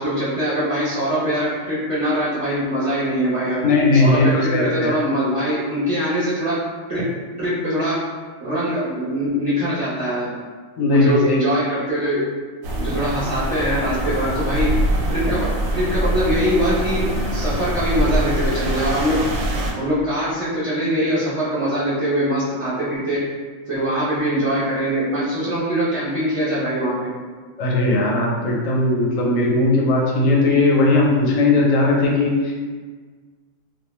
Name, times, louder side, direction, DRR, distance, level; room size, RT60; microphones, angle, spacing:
voice 1, 0.0-3.6 3.9-6.6 6.9-7.1 7.4-8.0 8.4-10.3 10.8-12.3 12.8-14.8 15.1-19.3 19.7-23.3 23.7-27.1, equal, 35° right, -11 dB, 0.5 m, -22 dB
voice 2, 3.6-4.9 10.8-11.4 14.2-14.4 27.6-32.7, left 2 dB, 80° left, -2 dB, 1.0 m, -18 dB
sound 1, 12.6-19.7, right 1 dB, 90° right, 1.0 m, -23 dB
2.2 x 2.2 x 3.0 m, 1.5 s
omnidirectional pair, 1.4 m